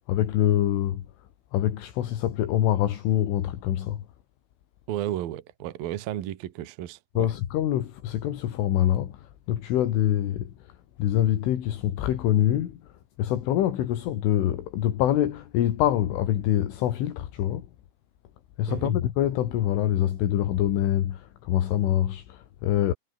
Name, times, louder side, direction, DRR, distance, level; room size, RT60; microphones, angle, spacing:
voice 1, 0.1-1.0 1.5-4.0 7.2-10.5 11.0-12.8 13.2-17.7 18.6-22.9, left 12 dB, 75° left, 4.6 m, -25 dB
voice 2, 4.9-7.3 18.7-18.9, right 12 dB, 60° right, 2.8 m, -33 dB
omnidirectional pair, 5.8 m